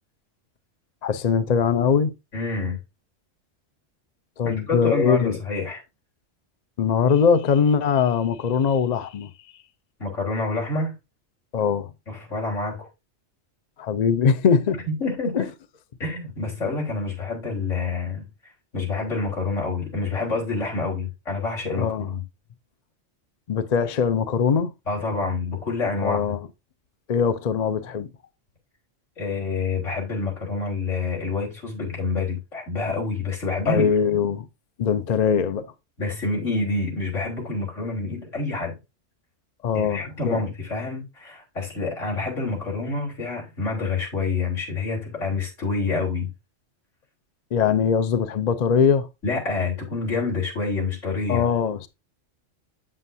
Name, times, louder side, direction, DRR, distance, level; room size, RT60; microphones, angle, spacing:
voice 1, 1.0-2.1 4.4-5.3 6.8-9.3 11.5-11.9 13.8-14.8 15.3-15.4 21.8-22.1 23.5-24.7 26.0-26.4 27.1-28.1 33.7-34.5 34.8-35.7 39.6-40.4 47.5-49.1 51.3-51.9, left 6 dB, 45° left, 0.6 m, -21 dB
voice 2, 2.3-2.8 4.4-5.8 10.0-10.9 12.1-12.9 14.9-15.5 16.0-18.3 18.7-22.2 24.9-26.3 29.2-33.8 36.0-38.7 39.7-46.3 49.2-51.5, left 3 dB, 80° left, 4.1 m, -27 dB
8.1 x 7.6 x 2.7 m
omnidirectional pair, 1.3 m